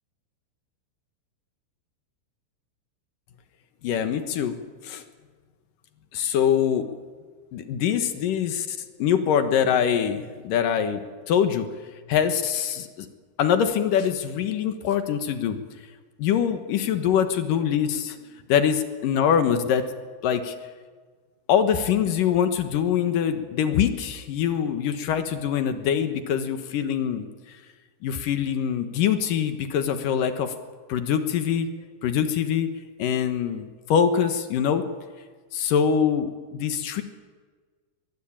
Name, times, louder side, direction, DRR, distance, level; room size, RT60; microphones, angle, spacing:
voice 1, 3.8-4.6 4.8-5.0 6.1-6.9 7.5-11.7 12.1-13.1 13.4-15.6 16.2-18.2 18.5-19.9 20.2-20.6 21.5-27.3 28.0-30.5 30.9-31.7 32.0-32.7 33.0-34.8 35.5-37.0, left 8 dB, 65° left, 9 dB, 2.2 m, -24 dB
23.0 x 22.5 x 8.8 m, 1.5 s
omnidirectional pair, 5.6 m